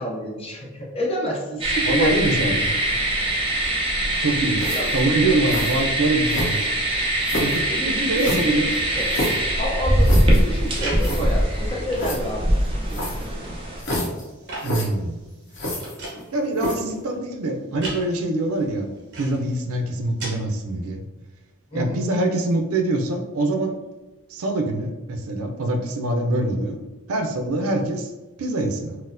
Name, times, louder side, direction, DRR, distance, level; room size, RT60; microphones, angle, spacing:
voice 1, 0.0-2.7 4.7-4.9 7.7-9.1 9.6-12.4 12.7-13.4 21.7-22.0, equal, 30° left, -2 dB, 0.6 m, -29 dB
sound 1, 1.6-13.8, right 1 dB, 25° right, 0.5 m, -23 dB
voice 2, 1.8-2.8 4.2-4.6 4.9-6.6 7.4-8.7 14.6-15.2 16.3-21.0 21.7-23.7 24.3-26.8 27.1-28.1 28.4-29.0, right 2 dB, 85° right, 4 dB, 0.5 m, -24 dB
sound 2, 4.5-5.0 5.5-5.8 6.3-6.8 7.2-7.6 8.2-9.4 10.0-10.4 10.7-10.8 11.0-11.2 12.0-12.2 12.9-13.3 13.8-14.2 14.6-14.8 15.5-16.2 16.5-16.9, left 1 dB, 60° left, 0.9 m, -28 dB
sound 3, 10.5-20.3, right 1 dB, 55° right, 1.0 m, -38 dB
4.1 x 2.0 x 2.5 m, 1.2 s
head